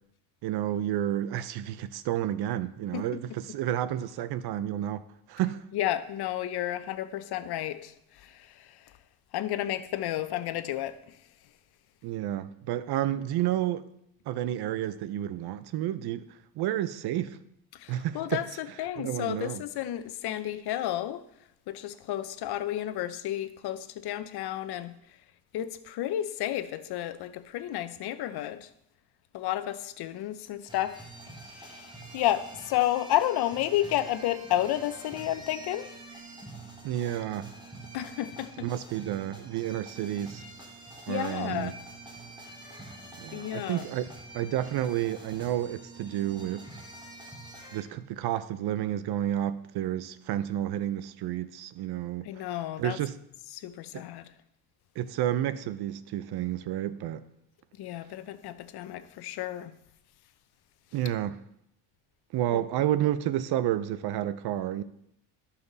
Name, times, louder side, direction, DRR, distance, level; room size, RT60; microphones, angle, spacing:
voice 1, 0.4-5.0 5.3-5.6 12.0-13.9 14.3-16.3 16.6-17.4 17.9-18.4 19.0-19.6 36.8-37.5 38.6-40.4 41.1-41.7 43.2-44.1 44.3-46.7 47.7-52.3 52.8-53.1 53.9-54.0 55.0-57.2 60.9-61.4 62.3-64.8, right 12 dB, 65° right, 0.7 m, -30 dB
voice 2, 5.7-8.8 9.3-11.0 17.7-21.2 21.7-24.9 25.5-28.7 29.3-31.1 31.5-35.9 37.9-38.7 41.1-41.8 43.3-43.8 52.2-53.0 53.5-54.3 57.8-59.7 62.5-62.6, left 13 dB, 65° left, 0.8 m, -31 dB
sound 1, 30.7-47.8, right 2 dB, 10° right, 1.6 m, -46 dB
13.0 x 5.7 x 4.0 m
cardioid pair, 110°, 42 cm